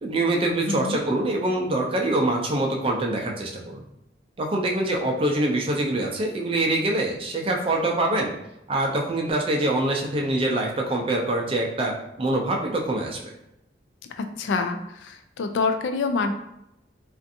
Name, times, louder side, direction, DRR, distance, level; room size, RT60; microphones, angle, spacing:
voice 1, 0.0-3.8 4.4-8.3 8.7-13.3, right 2 dB, 30° right, 1 dB, 0.4 m, -24 dB
voice 2, 0.7-1.0 14.2-16.3, left 4 dB, 80° left, 7 dB, 0.3 m, -26 dB
2.4 x 2.4 x 2.5 m, 0.83 s
head